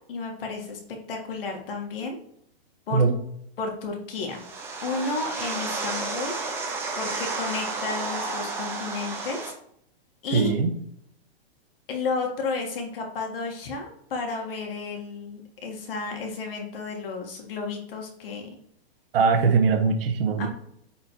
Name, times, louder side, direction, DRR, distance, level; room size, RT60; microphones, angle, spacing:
voice 1, 0.1-0.8 1.1-2.2 2.9-3.0 3.6-4.5 4.8-6.4 7.0-9.5 10.2-10.5 11.9-18.5 20.4-20.5, left 4 dB, 60° left, 2 dB, 1.7 m, -32 dB
sound 1, 4.3-9.5, right 3 dB, 5° right, 0.5 m, -31 dB
voice 2, 10.3-10.7 19.1-20.5, right 5 dB, 60° right, 6 dB, 1.3 m, -21 dB
9.1 x 4.2 x 3.1 m, 0.72 s
hypercardioid pair, 160°, 31 cm